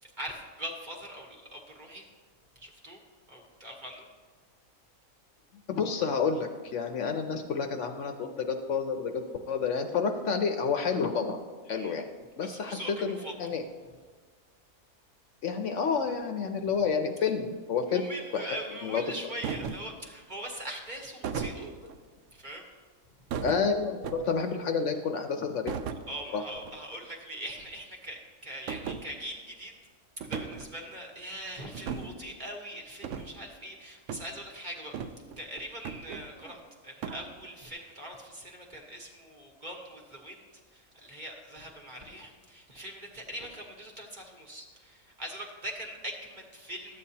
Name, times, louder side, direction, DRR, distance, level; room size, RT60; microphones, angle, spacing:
voice 1, 0.0-2.0 2.5-3.0 3.3-4.1 11.8-11.9 12.4-13.3 16.6-16.7 17.9-21.7 22.3-22.7 26.1-29.7 30.3-47.0, right 1 dB, 35° right, 0 dB, 1.1 m, -42 dB
voice 2, 5.7-11.4 11.7-12.1 12.4-13.6 15.4-18.0 18.3-19.0 23.4-25.8 26.3-26.4, left 5 dB, 65° left, 6 dB, 0.9 m, -29 dB
sound 1, 19.4-20.0 21.2-22.0 23.3-24.5 25.7-26.1 26.5-26.7 27.0-27.1 27.6-27.7 28.7-29.0 30.2-30.7 31.7-32.2 33.0-33.3 34.1-34.3 34.9-35.4 35.8-36.6 37.0-37.2, right 6 dB, 70° right, 0.9 m, -36 dB
12.5 x 8.7 x 2.8 m, 1.5 s
omnidirectional pair, 1.5 m